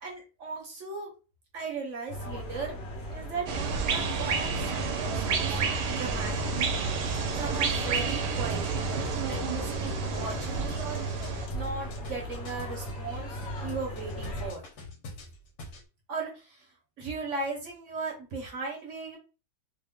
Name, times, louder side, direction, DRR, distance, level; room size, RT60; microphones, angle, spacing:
voice 1, 0.0-1.1 1.5-2.8 3.1-5.6 5.9-6.5 7.3-8.7 9.2-14.6 16.1-16.7 17.0-19.2, right 4 dB, 55° right, 0 dB, 1.0 m, -37 dB
sound 1, 2.1-14.5, equal, 50° left, 1.0 m, -37 dB
sound 2, 3.5-11.5, right 5 dB, 90° right, 1.2 m, -30 dB
sound 3, 7.1-13.0 13.4-15.9, left 1 dB, 70° left, 1.2 m, -45 dB
3.0 x 2.1 x 3.5 m, 0.33 s
omnidirectional pair, 1.7 m